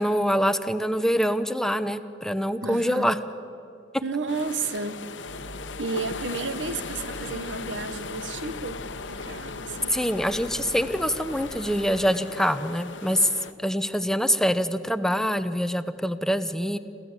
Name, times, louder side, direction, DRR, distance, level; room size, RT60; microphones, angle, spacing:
voice 1, 0.0-3.2 9.9-13.3 13.6-16.8, equal, 5° left, 0.6 m, -25 dB
voice 2, 2.6-3.1 4.0-5.0 5.8-8.8 9.1-9.9, right 4 dB, 75° right, 1.0 m, -32 dB
sound 1, 4.3-13.5, left 4 dB, 75° left, 0.9 m, -38 dB
sound 2, 5.3-12.1, right 1 dB, 45° right, 0.9 m, -45 dB
28.0 x 14.5 x 8.1 m
head